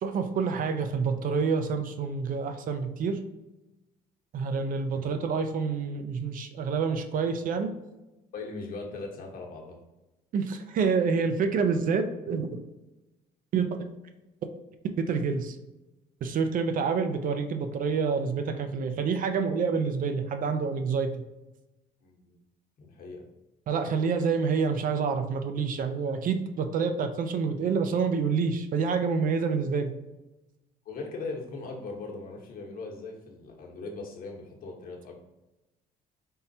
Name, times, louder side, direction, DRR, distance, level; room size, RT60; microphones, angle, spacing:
voice 1, 0.0-3.2 4.3-7.7 10.3-12.6 13.5-13.8 15.1-15.6 16.2-21.1 23.7-29.9, right 5 dB, 55° right, 7 dB, 0.6 m, -27 dB
voice 2, 8.3-9.8 22.0-22.4 22.8-23.3 30.8-35.2, left 3 dB, 60° left, 0 dB, 1.1 m, -39 dB
4.2 x 3.7 x 2.7 m, 1.0 s
cardioid pair, 110°, 17 cm